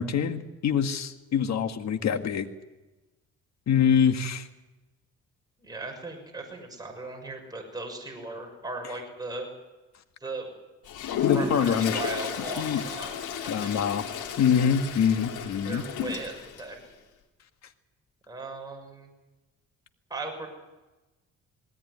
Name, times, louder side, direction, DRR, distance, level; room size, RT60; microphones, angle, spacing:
voice 1, 0.0-2.5 3.7-4.5 11.2-12.0 12.6-12.8 13.5-14.0 14.4-15.8, left 7 dB, 60° left, 8 dB, 1.8 m, -25 dB
voice 2, 5.6-9.5 10.2-10.5 11.3-13.1 13.6-13.7 15.6-16.8 18.3-19.1 20.1-20.5, right 3 dB, 15° right, 1 dB, 6.4 m, -37 dB
Toilet flush, 10.8-16.7, left 7 dB, 85° left, 2.9 m, -33 dB
19.5 x 18.0 x 9.7 m, 1.1 s
cardioid pair, 90°, 30 cm